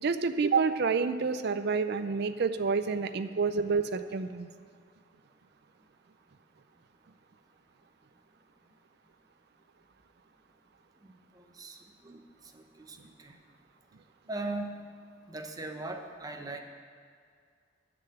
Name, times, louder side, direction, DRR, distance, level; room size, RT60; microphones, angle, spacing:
voice 1, 0.0-4.5, right 5 dB, 60° right, 10 dB, 0.5 m, -28 dB
voice 2, 11.4-11.8 12.0-12.2 12.5-13.3 14.3-14.8 15.3-16.6, right 2 dB, 20° right, 4 dB, 0.9 m, -39 dB
9.8 x 6.7 x 8.5 m, 2.2 s
head